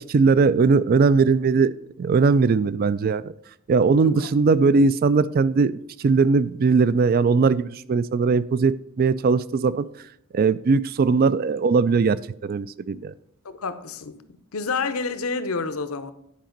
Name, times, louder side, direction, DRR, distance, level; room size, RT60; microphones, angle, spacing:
voice 1, 0.0-1.7 2.0-3.3 3.7-5.7 6.0-9.9 10.3-12.2 12.4-13.1, right 4 dB, 45° right, 0.3 m, -19 dB
voice 2, 13.4-14.2 14.5-16.1, left 4 dB, 75° left, 0.8 m, -29 dB
10.5 x 5.0 x 5.2 m
head